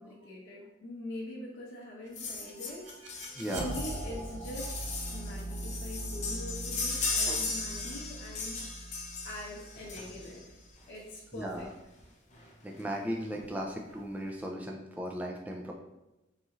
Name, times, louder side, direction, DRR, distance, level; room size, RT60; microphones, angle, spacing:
voice 1, 0.0-2.9 3.5-4.8 5.1-8.6 9.2-10.4 10.9-11.7, left 1 dB, 75° left, -4 dB, 0.7 m, -43 dB
sound 1, 2.1-10.5 11.6-11.7 12.0-12.1 12.3-12.5 12.8-13.4 13.9-14.0, left 3 dB, 35° left, 0.6 m, -37 dB
sound 2, 2.1-11.0, right 1 dB, 70° right, 0.6 m, -41 dB
voice 2, 3.3-3.7 11.3-11.7 12.6-15.7, equal, 10° right, 0 dB, 0.3 m, -37 dB
4.0 x 2.4 x 2.9 m, 0.98 s
head